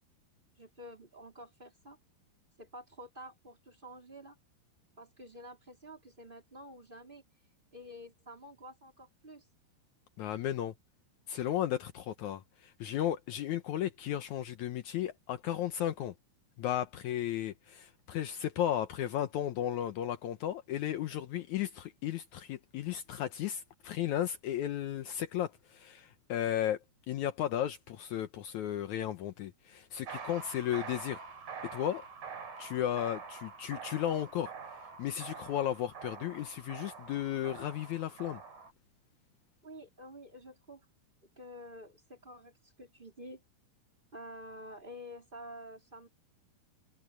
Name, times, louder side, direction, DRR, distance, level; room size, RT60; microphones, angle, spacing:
voice 1, 0.6-2.0 2.6-4.4 5.0-7.2 7.7-9.5 39.6-40.9 41.4-43.4 44.1-46.1, equal, 10° right, 4.1 m, -49 dB
voice 2, 10.2-10.7 11.3-16.1 16.6-26.8 27.1-31.2 31.7-32.0 32.6-34.5 35.0-38.4, left 11 dB, 90° left, 1.7 m, -34 dB
sound 1, 30.1-38.7, right 5 dB, 50° right, 4.3 m, -46 dB
omnidirectional pair, 4.6 m